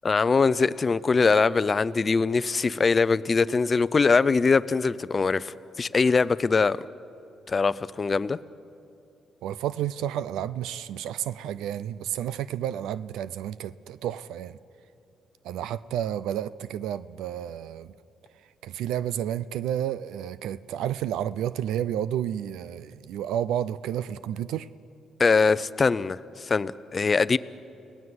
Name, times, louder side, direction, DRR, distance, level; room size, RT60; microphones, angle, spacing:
voice 1, 0.0-6.9 7.5-8.4 25.2-27.4, left 4 dB, 35° left, 16 dB, 0.6 m, -22 dB
voice 2, 9.4-14.6 15.4-17.9 18.6-24.7, right 10 dB, 90° right, 16 dB, 0.5 m, -31 dB
30.0 x 18.5 x 7.9 m, 2.8 s
cardioid pair, 90°, 0 cm